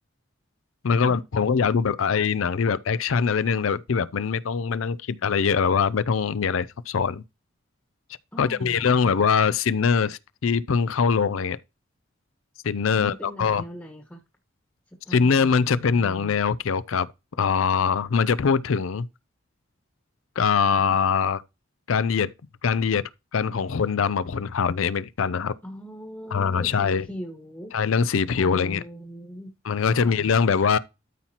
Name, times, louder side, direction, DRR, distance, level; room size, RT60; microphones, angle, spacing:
voice 1, 0.8-7.2 8.4-11.6 12.6-13.6 15.1-17.1 17.4-19.1 20.4-21.4 21.9-22.3 22.6-23.0 23.3-25.5 26.3-27.1 27.7-28.8 29.6-30.8, left 6 dB, 85° left, 0.5 m, -23 dB
voice 2, 8.3-9.2 12.9-14.2 15.0-16.2 20.7-20.8 25.6-27.7 28.4-29.5 29.9-30.2, equal, 10° left, 1.2 m, -41 dB
13.0 x 5.6 x 2.9 m
head